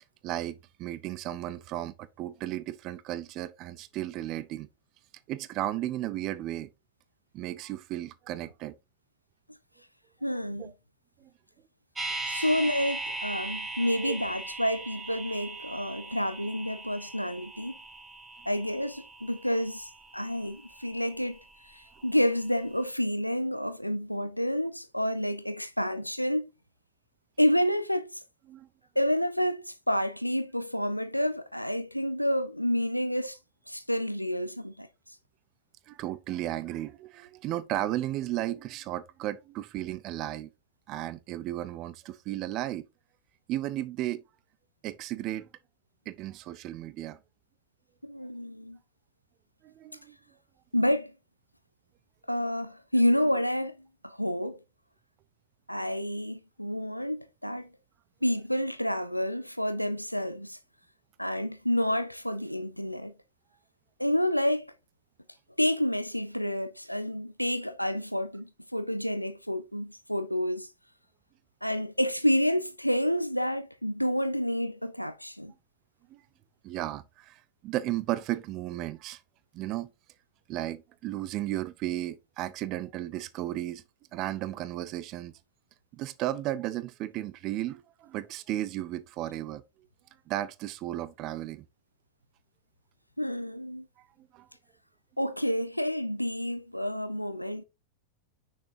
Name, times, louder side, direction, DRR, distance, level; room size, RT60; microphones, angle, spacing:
voice 1, 0.2-4.7 5.3-6.7 7.3-8.8 10.6-10.7 11.2-11.3 14.0-14.1 22.0-22.1 28.5-28.7 35.9-40.5 40.9-42.8 43.5-44.2 44.8-45.5 46.1-47.2 49.6-50.2 76.1-76.2 76.6-79.2 79.5-79.9 80.5-83.8 84.1-85.3 85.9-89.6 90.3-91.6 94.0-94.1 94.3-94.5, right 14 dB, 40° right, 0.5 m, -34 dB
voice 2, 10.2-10.7 12.2-17.7 18.5-21.4 21.7-26.5 27.4-28.2 29.0-33.4 33.7-34.9 48.0-48.8 50.7-51.1 52.3-53.8 54.0-54.6 55.7-57.7 58.2-60.6 61.2-63.1 64.0-64.7 65.6-70.7 71.6-75.5 93.2-93.9 95.2-97.6, equal, 90° left, 0.5 m, -29 dB
sound 1, 11.9-22.0 22.3-22.4, right 3 dB, 10° right, 1.3 m, -39 dB
6.1 x 6.0 x 2.7 m
figure-of-eight pair, 90°, 0 cm